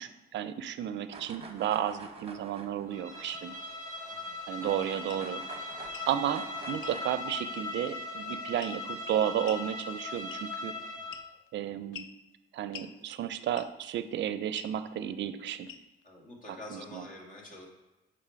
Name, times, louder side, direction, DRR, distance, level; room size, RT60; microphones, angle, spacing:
voice 1, 0.0-3.6 4.5-5.4 5.8-10.7 11.5-12.1 12.5-15.7 16.7-17.0, right 10 dB, 65° right, 13 dB, 0.5 m, -33 dB
sound 1, 1.1-4.3 4.6-7.2, right 4 dB, 30° right, 0.8 m, -48 dB
Bowed string instrument, 2.9-11.3, left 2 dB, 20° left, 1.2 m, -39 dB
sound 2, 5.1-5.3 5.8-6.1 6.8-7.0 8.6-8.9 9.5-9.7 10.3-10.6 11.1-11.5 11.9-12.2 12.7-12.9 13.6-13.9 14.5-14.7 15.7-16.0, left 8 dB, 80° left, 0.5 m, -46 dB
voice 2, 16.0-17.7, left 2 dB, 45° left, -2 dB, 2.0 m, -47 dB
5.0 x 4.9 x 5.6 m, 1.0 s
cardioid pair, 90°, 20 cm